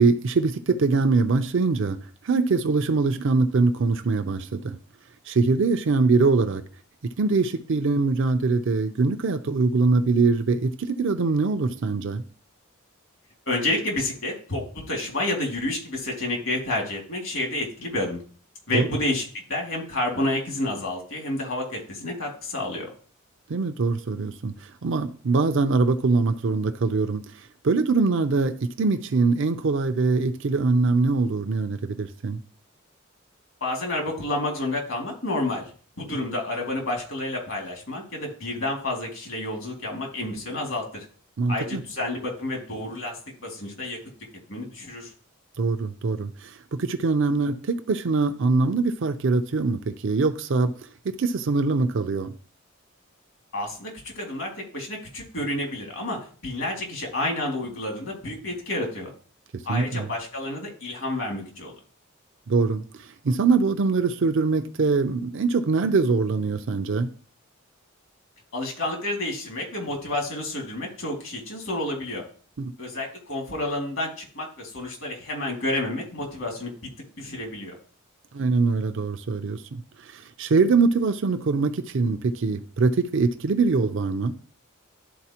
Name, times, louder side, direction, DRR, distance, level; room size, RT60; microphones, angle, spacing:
voice 1, 0.0-2.0 2.2-4.8 5.3-6.6 7.2-12.2 18.7-18.9 23.5-27.2 27.6-32.4 41.4-41.8 45.6-50.7 51.0-52.3 59.7-60.1 62.5-67.1 72.6-72.7 78.3-84.3, right 4 dB, 65° right, 0.5 m, -23 dB
voice 2, 13.5-18.2 18.7-22.9 33.6-35.7 36.0-41.1 41.5-44.0 44.5-45.1 53.5-59.1 59.6-61.7 68.5-72.2 72.8-76.7 77.2-77.7, left 1 dB, 70° left, 2.3 m, -30 dB
11.0 x 4.1 x 2.9 m
head